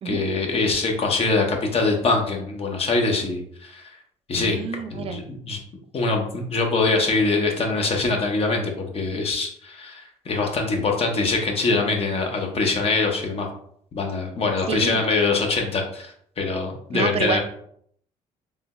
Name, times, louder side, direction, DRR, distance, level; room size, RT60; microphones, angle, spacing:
voice 1, 0.0-3.8 4.3-5.6 5.9-13.5 13.9-17.4, left 3 dB, 45° left, 2 dB, 0.9 m, -23 dB
voice 2, 4.4-5.2 14.7-15.0 16.9-17.4, right 6 dB, 45° right, 7 dB, 0.4 m, -28 dB
3.4 x 2.2 x 2.9 m, 0.65 s
supercardioid pair, 75°, 14 cm